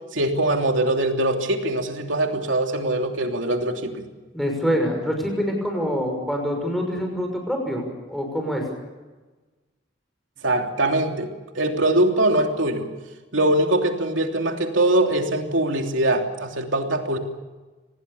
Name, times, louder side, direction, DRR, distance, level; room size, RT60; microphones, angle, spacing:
voice 1, 0.1-4.1 10.4-11.3 11.5-12.9 13.3-17.2, right 1 dB, 85° right, 3 dB, 3.1 m, -22 dB
voice 2, 4.3-8.6, equal, ahead, 2 dB, 6.0 m, -25 dB
25.5 x 19.0 x 7.1 m, 1.2 s
head